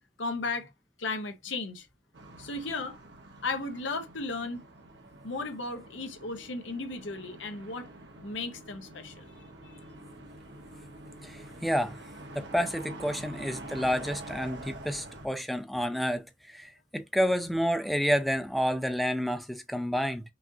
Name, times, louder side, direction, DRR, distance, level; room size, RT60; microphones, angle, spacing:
voice 1, 0.2-0.7 1.0-1.9 2.4-3.0 3.4-4.6 5.2-7.9 8.2-9.3, left 3 dB, 80° left, 0.9 m, -35 dB
sound 1, 2.1-15.3, right 1 dB, 70° right, 1.2 m, -46 dB
voice 2, 11.2-12.0 12.3-20.2, equal, ahead, 0.5 m, -29 dB
5.9 x 2.6 x 2.7 m
head